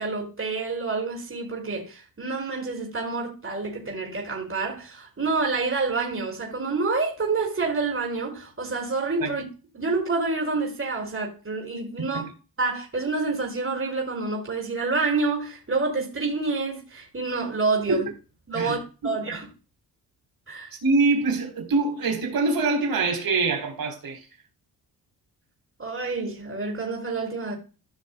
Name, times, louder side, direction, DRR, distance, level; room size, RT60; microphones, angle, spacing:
voice 1, 0.0-9.4 9.7-12.3 12.6-18.1 18.5-19.5 20.5-20.7 25.8-27.6, right 3 dB, 35° right, 5.2 m, -28 dB
voice 2, 20.8-24.2, right 3 dB, 60° right, 3.9 m, -24 dB
16.0 x 6.1 x 2.2 m
cardioid pair, 65°, 39 cm